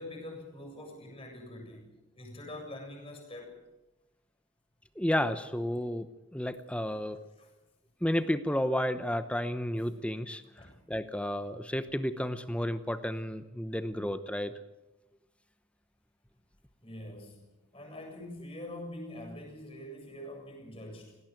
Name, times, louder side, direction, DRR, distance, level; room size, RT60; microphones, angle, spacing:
voice 1, 0.0-3.5 7.4-7.5 10.6-10.8 16.8-17.4 17.7-21.2, left 1 dB, 25° left, 2 dB, 7.6 m, -44 dB
voice 2, 5.0-7.2 8.0-14.5, left 1 dB, 5° left, 12 dB, 0.8 m, -32 dB
18.0 x 17.5 x 9.2 m, 0.99 s
head